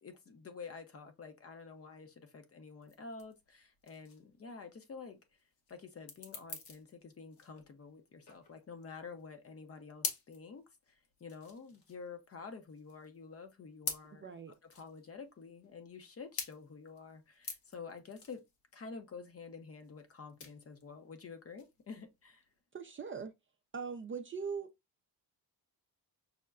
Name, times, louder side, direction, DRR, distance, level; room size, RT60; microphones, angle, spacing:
voice 1, 0.0-5.2 5.7-14.3 14.7-18.4 18.7-22.4, left 5 dB, 35° left, 0.7 m, -49 dB
sound 1, 2.8-22.6, left 4 dB, 60° left, 1.0 m, -47 dB
voice 2, 14.2-14.5 22.7-23.3 23.7-24.7, right 6 dB, 30° right, 0.4 m, -40 dB
5.6 x 2.1 x 2.3 m
cardioid pair, 120°, 41 cm